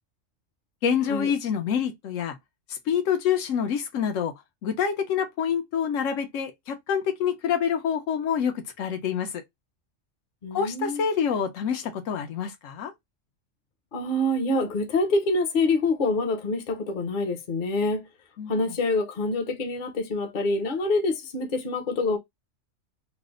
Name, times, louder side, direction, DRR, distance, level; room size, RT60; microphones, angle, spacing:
voice 1, 0.8-2.4 2.7-4.3 4.6-9.4 10.5-12.9 18.4-18.7, left 7 dB, 80° left, 1.1 m, -27 dB
voice 2, 10.4-11.0 13.9-18.1 18.5-22.2, left 2 dB, 45° left, 0.8 m, -26 dB
3.1 x 2.1 x 3.7 m
omnidirectional pair, 1.3 m